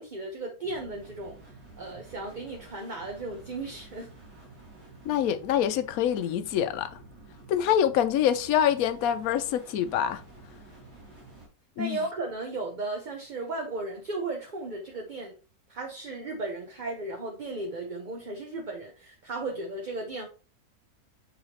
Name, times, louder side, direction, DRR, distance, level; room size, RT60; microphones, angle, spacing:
voice 1, 0.0-1.4 1.8-4.1 11.8-15.3 15.7-20.3, right 2 dB, 40° right, 0.8 m, -35 dB
sound 1, 0.6-11.5, right 2 dB, 85° right, 3.5 m, -50 dB
voice 2, 5.0-6.9 7.5-10.2 11.8-12.0, left 10 dB, 70° left, 1.0 m, -25 dB
7.4 x 4.9 x 2.9 m
omnidirectional pair, 1.6 m